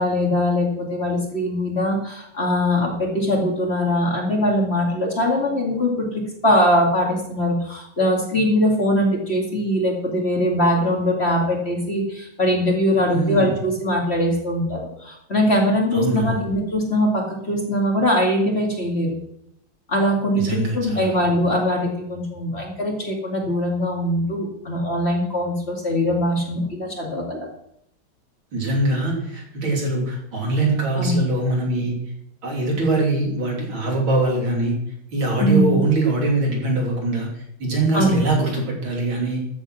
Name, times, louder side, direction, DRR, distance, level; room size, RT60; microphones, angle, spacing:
voice 1, 0.0-19.2 19.9-27.5 30.9-31.2 35.4-35.8 37.9-38.2, left 1 dB, 30° left, -1 dB, 2.5 m, -21 dB
voice 2, 13.1-13.5 15.9-16.4 20.3-21.2 28.5-32.0 32.4-34.8 35.1-39.4, right 2 dB, 70° right, -1 dB, 4.1 m, -22 dB
14.0 x 7.4 x 6.2 m, 0.76 s
omnidirectional pair, 2.3 m